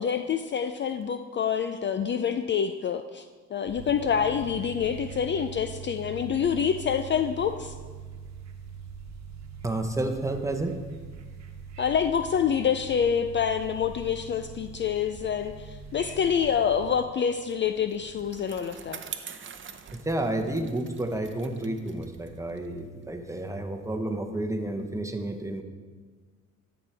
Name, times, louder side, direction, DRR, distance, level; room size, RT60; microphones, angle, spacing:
voice 1, 0.0-3.2 3.5-7.7 11.8-19.0, left 7 dB, 40° left, 8 dB, 0.4 m, -27 dB
sound 1, 3.7-17.0, right 6 dB, 65° right, 1.1 m, -42 dB
voice 2, 9.6-10.8 19.9-25.6, right 1 dB, 10° right, 5 dB, 0.9 m, -30 dB
Bicycle, 17.3-24.0, right 7 dB, 40° right, 0.7 m, -45 dB
13.0 x 6.1 x 3.4 m, 1.5 s
cardioid pair, 90°, 30 cm